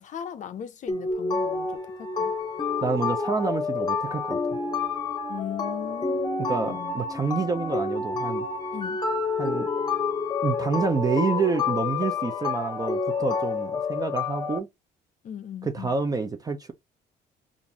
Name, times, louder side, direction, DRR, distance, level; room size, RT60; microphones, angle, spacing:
voice 1, 0.0-2.3 5.3-7.0 8.7-9.0 15.2-15.9, left 9 dB, 45° left, 0.5 m, -38 dB
sound 1, 0.9-14.6, left 4 dB, 25° left, 0.8 m, -28 dB
voice 2, 2.8-4.4 6.4-8.5 9.4-9.7 10.4-14.7 15.6-16.7, right 4 dB, 20° right, 0.5 m, -28 dB
3.8 x 2.5 x 2.8 m
cardioid pair, 110°, 17 cm